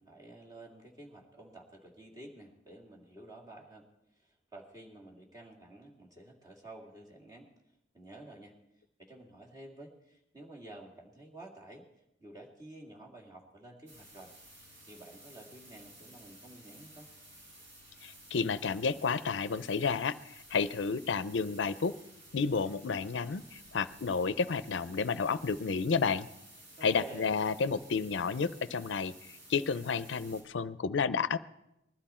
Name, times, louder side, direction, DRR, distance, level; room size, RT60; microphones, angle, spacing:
voice 1, 0.0-3.9 4.1-7.5 7.9-8.5 9.0-11.9 12.2-14.3 14.9-17.1 26.8-27.3, right 2 dB, 20° right, -2 dB, 2.3 m, -51 dB
sound 1, 13.9-30.4, right 1 dB, 90° right, 6.7 m, -55 dB
voice 2, 18.0-20.2 20.5-22.0 22.3-26.3 26.8-29.1 29.5-31.4, left 5 dB, 85° left, 15 dB, 0.5 m, -31 dB
20.5 x 12.5 x 4.3 m, 0.85 s
head